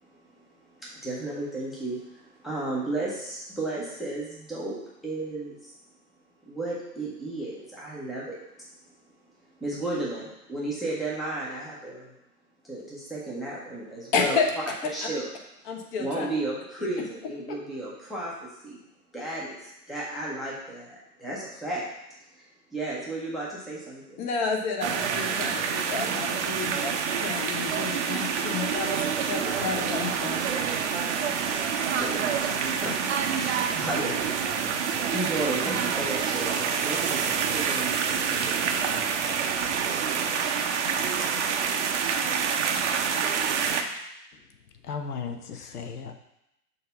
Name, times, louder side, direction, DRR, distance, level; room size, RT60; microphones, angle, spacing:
voice 1, 0.8-4.8 5.0-5.7 6.5-8.6 9.6-12.1 12.6-14.4 14.9-15.3 16.0-18.8 19.1-21.8 22.3-24.2 29.4-29.6 31.4-38.5, right 2 dB, ahead, -6 dB, 0.7 m, -34 dB
voice 2, 14.1-14.7 15.7-16.3 24.2-30.4, left 4 dB, 25° left, 2 dB, 0.9 m, -30 dB
sound 1, 24.8-43.8, right 6 dB, 45° right, 0.7 m, -27 dB
sound 2, 29.5-35.6, right 6 dB, 75° right, 0.9 m, -45 dB
voice 3, 38.7-39.6 44.3-44.4 44.7-46.1, left 5 dB, 70° left, 8 dB, 0.7 m, -38 dB
6.6 x 2.8 x 5.6 m, 0.86 s
figure-of-eight pair, 110°, 48 cm